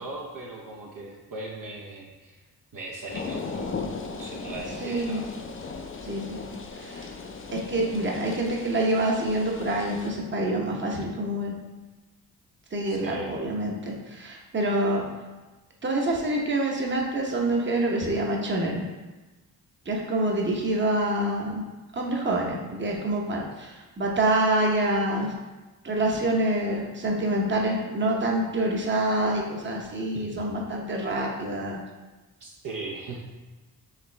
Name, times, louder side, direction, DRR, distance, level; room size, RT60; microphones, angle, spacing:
voice 1, 0.0-2.4 2.7-3.8 4.1-5.3 12.9-13.3 30.1-30.4 32.4-33.2, right 2 dB, 55° right, -2 dB, 0.8 m, -38 dB
sound 1, 3.1-10.1, left 4 dB, 35° left, 0.5 m, -37 dB
voice 2, 4.8-5.2 6.0-6.4 6.8-7.1 7.5-11.6 12.7-15.1 15.8-18.8 19.9-21.6 21.9-25.3 25.8-31.8, right 1 dB, 30° right, 0 dB, 0.9 m, -26 dB
4.9 x 3.1 x 3.3 m, 1.2 s
cardioid pair, 60°, 38 cm